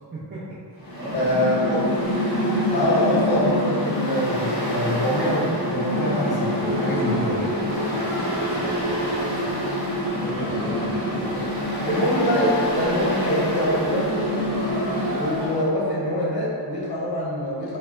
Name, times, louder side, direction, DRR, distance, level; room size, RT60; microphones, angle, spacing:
voice 1, 0.1-1.5 1.7-1.9 6.9-9.9 10.2-11.0, right 1 dB, 30° right, -9 dB, 0.5 m, -37 dB
Mechanical fan, 0.8-15.6, equal, 25° left, 1.2 m, -26 dB
voice 2, 1.1-1.8 2.7-7.4 11.1-11.4 11.8-14.2 15.1-17.8, equal, 65° left, -5 dB, 0.9 m, -24 dB
sound 1, 6.6-15.5, equal, 90° right, 0.6 m, -34 dB
4.4 x 2.1 x 2.4 m, 2.3 s
wide cardioid pair, 155°, 41 cm